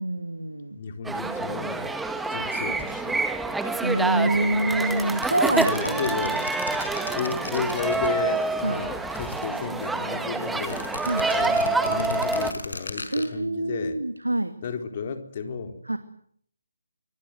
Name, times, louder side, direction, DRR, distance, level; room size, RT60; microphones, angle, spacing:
voice 1, 0.0-0.8 3.8-6.3 8.6-8.9 11.1-11.3 13.1-14.5 15.9-16.0, right 1 dB, 85° right, 9 dB, 2.5 m, -26 dB
voice 2, 0.7-2.0 2.3-3.2 5.6-6.5 7.1-10.8 11.3-14.0 14.6-15.8, left 5 dB, 40° left, 7 dB, 4.2 m, -33 dB
sound 1, 1.0-12.5, right 3 dB, 5° right, 1.6 m, -27 dB
sound 2, 4.8-8.6 8.9-10.0 10.5-13.3, left 3 dB, 65° left, 5.4 m, -38 dB
26.5 x 25.0 x 8.0 m, 0.65 s
figure-of-eight pair, 145°, 0 cm